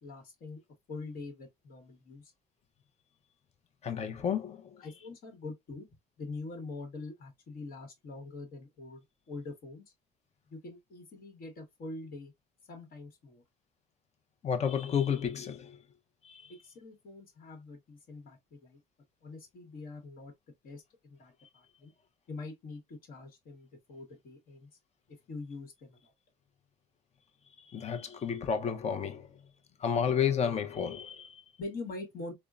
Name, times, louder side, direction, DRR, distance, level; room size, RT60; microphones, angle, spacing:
voice 1, 0.0-0.6 0.9-2.3 4.8-5.9 6.2-9.8 10.5-12.3 12.7-13.4 16.5-18.8 19.2-20.3 20.6-21.9 22.3-24.7 25.1-26.1 31.6-32.3, left 3 dB, 60° left, 1.2 m, -44 dB
voice 2, 3.8-4.8 14.4-15.8 16.2-16.5 27.6-29.4 29.8-31.4, left 7 dB, 40° left, 0.7 m, -31 dB
3.6 x 2.1 x 2.3 m
cardioid pair, 110°, 17 cm